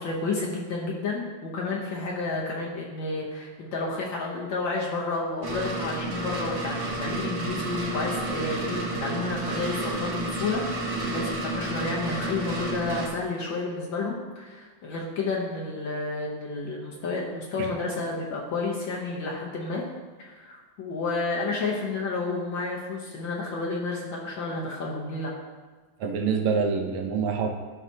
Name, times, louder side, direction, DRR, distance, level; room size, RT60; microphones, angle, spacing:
voice 1, 0.0-19.8 20.2-25.3, left 3 dB, 65° left, -3 dB, 1.6 m, -31 dB
sound 1, 5.4-13.1, right 2 dB, 60° right, 1.8 m, -31 dB
voice 2, 26.0-27.5, right 5 dB, 80° right, 3 dB, 1.6 m, -26 dB
12.0 x 5.7 x 2.8 m, 1.4 s
omnidirectional pair, 2.3 m